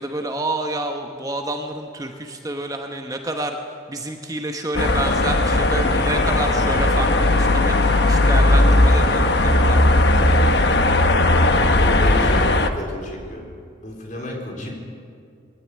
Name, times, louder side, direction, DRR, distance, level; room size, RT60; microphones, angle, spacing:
voice 1, 0.0-3.6 3.9-10.1, right 1 dB, 20° right, 4 dB, 1.1 m, -29 dB
sound 1, 4.7-12.7, left 2 dB, 60° left, 1.2 m, -17 dB
voice 2, 11.5-13.5 13.8-14.7, left 1 dB, 40° left, 1 dB, 4.2 m, -32 dB
21.0 x 17.0 x 10.0 m, 2.4 s
head